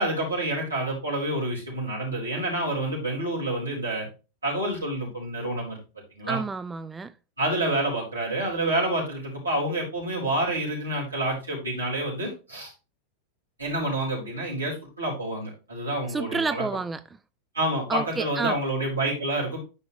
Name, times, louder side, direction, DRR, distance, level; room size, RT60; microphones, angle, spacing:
voice 1, 0.0-4.1 4.4-5.8 6.2-6.4 7.4-12.7 13.6-16.6 17.5-19.6, right 1 dB, 80° right, 4.5 m, -28 dB
voice 2, 6.3-7.1 16.1-17.0 17.9-18.6, right 4 dB, 15° right, 0.4 m, -29 dB
10.0 x 5.6 x 3.3 m
figure-of-eight pair, 90°, 0 cm